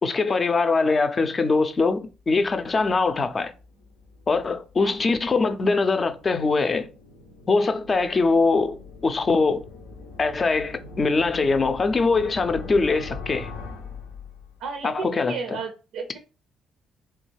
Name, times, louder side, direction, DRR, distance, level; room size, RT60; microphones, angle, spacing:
voice 1, 0.0-3.5 4.3-6.9 7.5-8.8 9.0-9.6 10.2-13.5 14.8-15.6, left 3 dB, 40° left, 0.5 m, -22 dB
sound 1, 1.9-14.8, left 4 dB, 85° left, 0.6 m, -42 dB
voice 2, 14.6-16.2, right 5 dB, 80° right, 0.5 m, -33 dB
3.4 x 2.3 x 3.2 m
hypercardioid pair, 55°, 0 cm